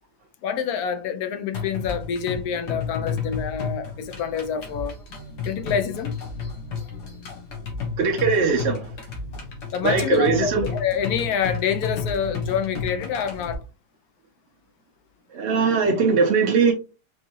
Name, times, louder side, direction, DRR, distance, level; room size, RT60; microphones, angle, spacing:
voice 1, 0.4-4.9 5.4-6.1 9.7-13.6, left 7 dB, 70° left, 1.1 m, -27 dB
sound 1, 1.5-13.5, left 5 dB, 90° left, 1.8 m, -32 dB
voice 2, 8.0-8.9 9.8-10.6 15.3-16.7, right 5 dB, 60° right, 0.7 m, -20 dB
4.5 x 3.2 x 2.8 m
omnidirectional pair, 1.7 m